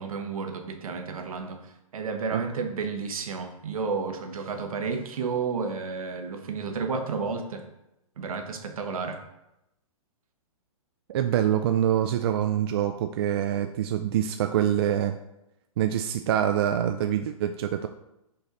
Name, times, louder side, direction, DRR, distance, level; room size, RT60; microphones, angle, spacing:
voice 1, 0.0-7.7 8.2-9.2, right 5 dB, 70° right, 6 dB, 1.2 m, -32 dB
voice 2, 11.1-15.2 15.8-17.9, right 10 dB, 45° right, 7 dB, 0.4 m, -25 dB
6.3 x 5.7 x 3.8 m, 0.88 s
hypercardioid pair, 145°, 19 cm